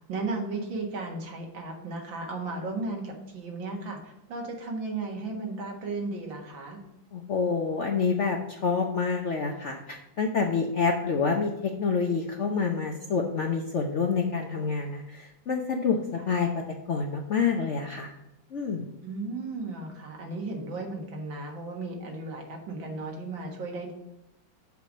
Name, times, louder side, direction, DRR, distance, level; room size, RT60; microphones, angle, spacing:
voice 1, 0.1-6.8 19.0-23.9, right 3 dB, 80° right, 1 dB, 2.3 m, -35 dB
voice 2, 7.1-16.5 16.9-18.1 18.5-18.8, left 5 dB, 60° left, 2 dB, 0.8 m, -27 dB
6.8 x 5.0 x 6.1 m, 0.90 s
omnidirectional pair, 2.1 m